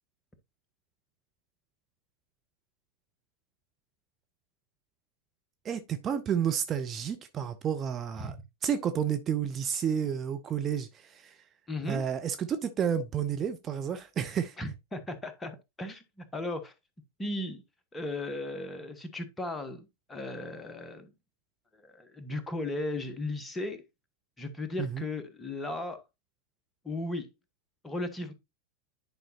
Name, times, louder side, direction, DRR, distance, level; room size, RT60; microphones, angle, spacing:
voice 1, 5.6-8.3 8.6-11.4 11.9-14.6 24.8-25.0, right 8 dB, 25° right, 0.7 m, -31 dB
voice 2, 11.7-12.1 14.6-16.7 17.2-17.6 17.9-21.1 21.7-23.8 24.4-26.0 26.8-27.3 27.8-28.3, left 2 dB, 10° left, 1.4 m, -36 dB
10.0 x 5.3 x 2.8 m
figure-of-eight pair, 90°, 0 cm